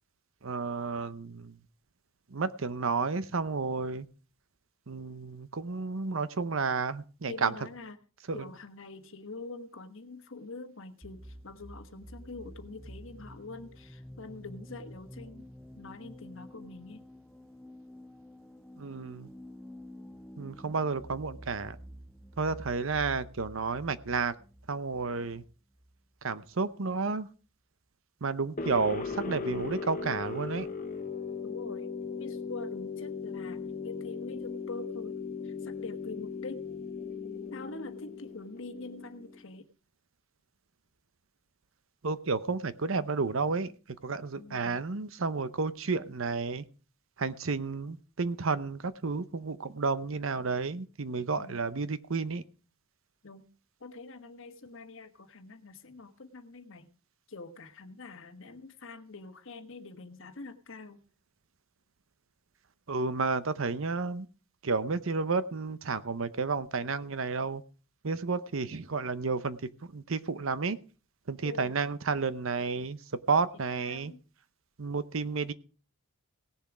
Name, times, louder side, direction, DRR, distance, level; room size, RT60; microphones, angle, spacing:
voice 1, 0.4-1.6 2.3-4.1 4.9-7.5 8.3-8.4 18.8-19.3 20.4-21.8 22.4-24.3 24.7-25.4 26.2-27.3 28.2-30.7 42.0-43.7 44.0-46.6 47.2-52.4 62.9-64.3 64.6-67.6 68.0-69.6 69.9-70.8 71.3-73.0 73.3-74.1 74.8-75.5, right 4 dB, 65° right, 14 dB, 0.8 m, -31 dB
voice 2, 7.3-8.0 8.3-15.5 15.8-17.0 31.4-31.9 32.2-35.2 35.4-36.6 37.5-39.7 44.3-44.8 51.4-51.6 53.2-53.4 53.8-56.9 57.3-61.0 71.4-71.8 73.7-74.2, left 3 dB, 65° left, 8 dB, 1.3 m, -45 dB
sound 1, 11.0-26.6, equal, ahead, 0.6 m, -49 dB
sound 2, 28.6-39.4, left 5 dB, 40° left, 1.1 m, -38 dB
17.5 x 7.1 x 4.9 m, 0.36 s
head